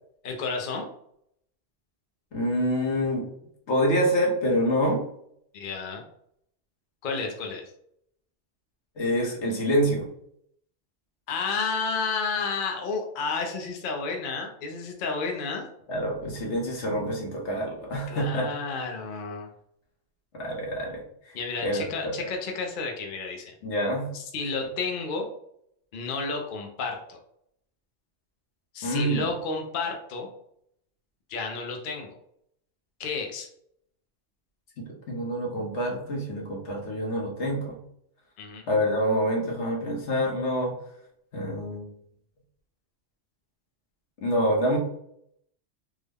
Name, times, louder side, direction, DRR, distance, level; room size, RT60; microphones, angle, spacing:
voice 1, 0.2-0.9 5.5-6.0 7.0-7.6 11.3-15.7 18.1-19.5 21.3-23.5 24.1-25.3 25.9-27.2 28.7-30.3 31.3-32.1 33.0-33.5 38.4-38.6, left 4 dB, 55° left, 2 dB, 0.7 m, -31 dB
voice 2, 2.3-3.2 3.7-5.0 9.0-10.1 15.9-18.5 20.3-21.0 21.2-21.3 21.6-22.1 23.6-24.1 28.8-29.3 34.8-37.8 38.7-40.7 41.3-41.9 44.2-44.8, equal, 70° left, -1 dB, 1.2 m, -26 dB
3.5 x 2.1 x 3.4 m, 0.71 s
omnidirectional pair, 1.2 m